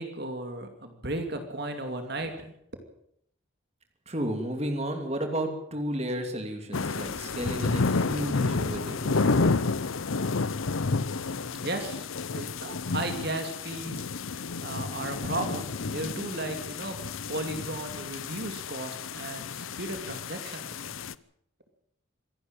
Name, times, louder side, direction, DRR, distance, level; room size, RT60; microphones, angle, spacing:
voice 1, 0.0-2.5 11.0-17.0 17.3-20.8, right 2 dB, 50° right, 6 dB, 2.6 m, -35 dB
voice 2, 4.1-9.4, right 1 dB, 30° right, 5 dB, 2.8 m, -32 dB
sound 1, 6.7-21.1, left 4 dB, 75° left, 0.8 m, -30 dB
26.0 x 12.0 x 9.0 m, 0.70 s
head